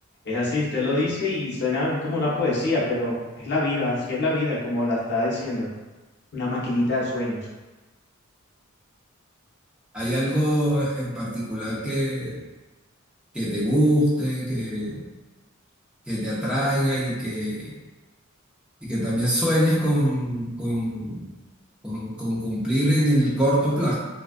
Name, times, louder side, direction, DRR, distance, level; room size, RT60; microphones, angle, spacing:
voice 1, 0.3-5.7 6.3-7.4, left 2 dB, 55° left, -6 dB, 0.7 m, -25 dB
voice 2, 9.9-12.4 13.3-15.0 16.1-17.7 18.8-21.3 21.8-23.9, equal, 5° right, -7 dB, 0.5 m, -24 dB
2.3 x 2.2 x 2.4 m, 1.2 s
head